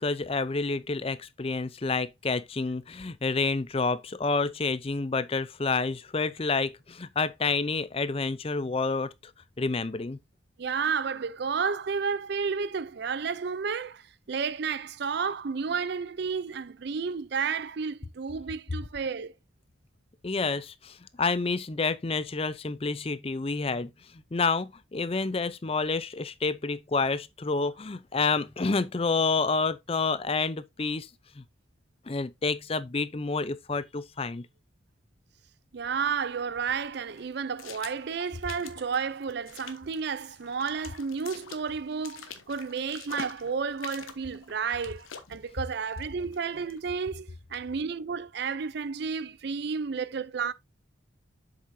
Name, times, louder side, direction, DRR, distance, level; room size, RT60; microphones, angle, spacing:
voice 1, 0.0-9.1 9.6-10.2 20.2-23.9 24.3-31.1 31.4-31.5 32.1-34.5, left 4 dB, 30° left, 0.5 m, -29 dB
voice 2, 10.6-19.3 35.7-50.5, right 5 dB, 55° right, 0.5 m, -32 dB
sound 1, 35.8-46.9, left 6 dB, 90° left, 1.2 m, -47 dB
7.8 x 6.7 x 2.6 m
head